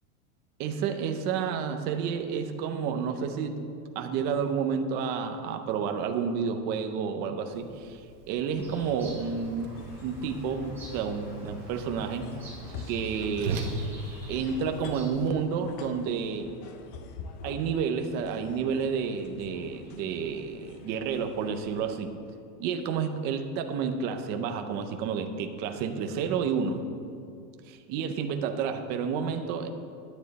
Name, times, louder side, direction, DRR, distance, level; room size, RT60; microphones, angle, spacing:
voice 1, 0.6-3.6 4.0-8.0 8.3-9.7 10.0-12.3 12.9-13.7 14.3-16.5 17.4-22.1 22.6-26.8 27.7-29.7, right 6 dB, 20° right, 6 dB, 0.6 m, -30 dB
Whoosh swoosh swish, 7.5-15.3, right 3 dB, 45° right, 1.4 m, -41 dB
Bird vocalization bird call bird song, 8.5-15.3, equal, 5° right, 3.7 m, -45 dB
sound 1, 9.7-21.9, left 5 dB, 25° left, 0.6 m, -46 dB
16.0 x 10.0 x 4.1 m, 2.3 s
supercardioid pair, 170°, 45 cm